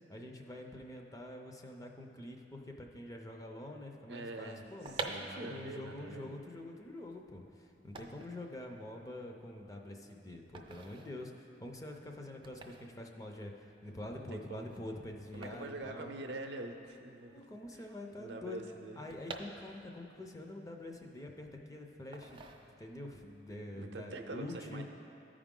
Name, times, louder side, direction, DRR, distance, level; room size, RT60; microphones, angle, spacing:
voice 1, 0.1-16.1 17.3-18.6 19.0-24.8, left 1 dB, 20° left, 2 dB, 0.5 m, -46 dB
voice 2, 4.1-6.4 14.2-14.7 15.3-17.9 18.2-19.0 23.8-24.8, right 2 dB, 70° right, 4 dB, 0.6 m, -45 dB
sound 1, 4.8-16.7 17.0-17.1 17.3-20.1 20.5-21.6 22.1-23.1 23.5-23.8, right 3 dB, 30° right, 0.5 m, -48 dB
13.5 x 4.9 x 3.7 m, 2.6 s
head